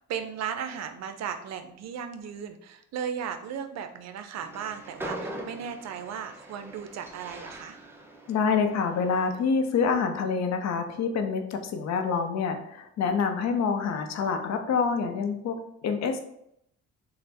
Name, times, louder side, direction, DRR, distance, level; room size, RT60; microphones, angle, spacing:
voice 1, 0.1-7.8, right 7 dB, 60° right, 8 dB, 0.5 m, -36 dB
Train, 4.4-9.7, right 1 dB, 10° right, 0.5 m, -42 dB
voice 2, 8.3-16.2, left 5 dB, 60° left, 6 dB, 0.6 m, -27 dB
3.3 x 2.1 x 4.2 m, 0.75 s
cardioid pair, 90°, 30 cm